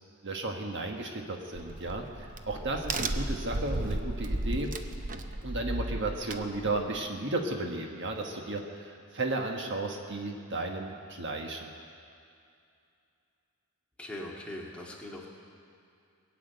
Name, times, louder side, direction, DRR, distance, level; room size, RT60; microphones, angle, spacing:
voice 1, 0.2-4.7 5.4-11.7, right 2 dB, 55° right, 2 dB, 1.4 m, -34 dB
Crack, 1.5-7.0, right 2 dB, 35° right, 0.7 m, -34 dB
voice 2, 14.0-15.3, left 1 dB, 5° left, -3 dB, 2.0 m, -41 dB
21.0 x 7.6 x 9.1 m, 2.5 s
head